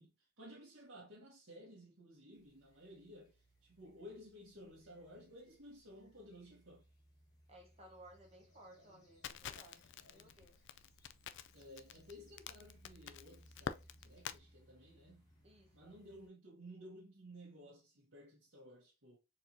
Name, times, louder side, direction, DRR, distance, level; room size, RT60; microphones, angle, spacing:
voice 1, 0.0-6.9 11.5-15.2 15.7-19.2, equal, 60° right, 1.3 m, -56 dB
sound 1, 2.3-16.3, equal, 20° left, 1.4 m, -67 dB
sound 2, 7.1-7.2 8.0-10.8, left 2 dB, 90° left, 1.8 m, -71 dB
voice 2, 7.5-10.6 15.4-15.9, right 1 dB, 30° right, 0.9 m, -60 dB
Crackle, 9.2-14.4, left 8 dB, 55° left, 0.3 m, -47 dB
4.4 x 3.1 x 2.6 m
head